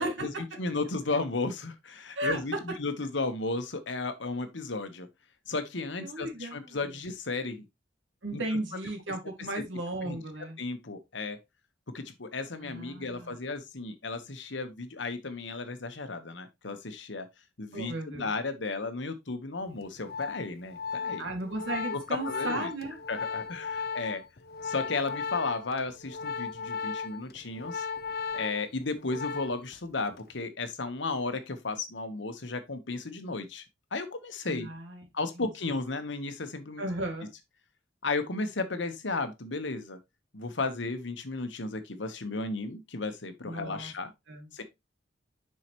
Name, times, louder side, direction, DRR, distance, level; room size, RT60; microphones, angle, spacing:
voice 1, 0.0-5.1 5.5-7.6 8.3-8.4 9.5-9.6 10.0-10.2 10.6-11.4 11.9-17.3 17.6-21.3 21.9-22.7 23.1-24.2 24.6-27.8 28.3-33.6 33.9-34.7 35.1-36.8 38.0-40.0 40.3-44.1 44.5-44.6, left 3 dB, 75° left, 1.1 m, -34 dB
voice 2, 6.0-6.7 8.2-10.6 12.6-13.3 17.7-18.3 21.2-23.0 34.5-35.0 35.4-35.5 36.8-37.3 43.4-43.9 44.3-44.5, right 1 dB, 80° right, 2.3 m, -35 dB
Organ, 19.8-29.8 30.0-30.4, left 5 dB, 50° left, 0.6 m, -36 dB
7.6 x 5.6 x 3.0 m
head